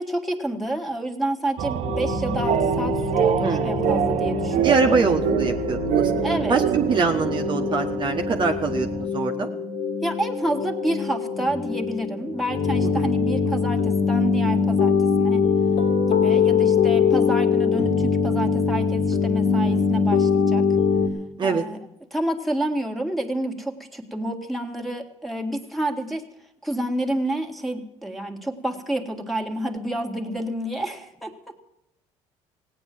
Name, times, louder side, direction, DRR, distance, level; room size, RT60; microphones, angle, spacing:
voice 1, 0.0-5.0 6.2-6.6 10.0-15.4 16.1-20.6 21.4-21.8 22.1-26.2 26.6-31.5, right 1 dB, ahead, 3 dB, 1.9 m, -29 dB
sound 1, 1.6-9.0, right 9 dB, 65° right, 0.9 m, -25 dB
sound 2, 1.8-21.1, left 5 dB, 80° left, 2.5 m, -23 dB
voice 2, 3.4-3.7 4.6-6.1 6.5-9.5 12.8-13.1 21.4-21.6, right 4 dB, 40° right, 3 dB, 1.3 m, -24 dB
17.0 x 9.1 x 7.6 m, 0.82 s
cardioid pair, 100°, 13 cm